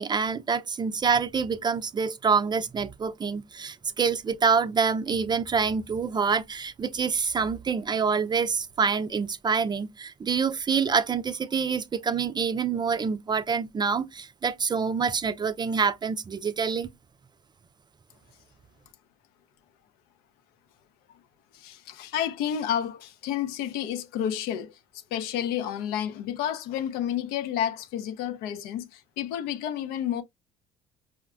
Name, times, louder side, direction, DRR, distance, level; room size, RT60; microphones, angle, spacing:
voice 1, 0.0-16.9, right 5 dB, 25° right, 0.4 m, -26 dB
voice 2, 21.5-30.2, left 10 dB, 70° left, 0.5 m, -30 dB
4.9 x 2.1 x 2.3 m
hypercardioid pair, 60°, 17 cm